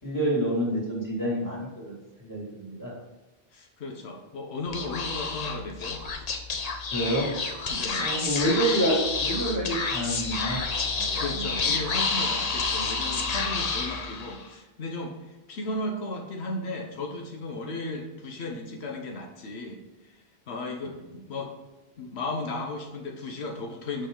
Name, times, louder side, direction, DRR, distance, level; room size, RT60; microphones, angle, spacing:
voice 1, 0.0-3.0 6.9-7.3 7.9-10.6 11.0-11.5 12.8-12.9, right 1 dB, 15° left, -5 dB, 2.4 m, -28 dB
voice 2, 3.5-6.0 7.7-8.0 11.1-20.1 20.5-21.5 22.0-24.1, left 2 dB, 85° left, 2 dB, 1.1 m, -35 dB
Speech / Whispering, 4.7-14.5, left 4 dB, 45° left, 0.7 m, -29 dB
6.6 x 5.2 x 3.7 m, 1.1 s
omnidirectional pair, 1.1 m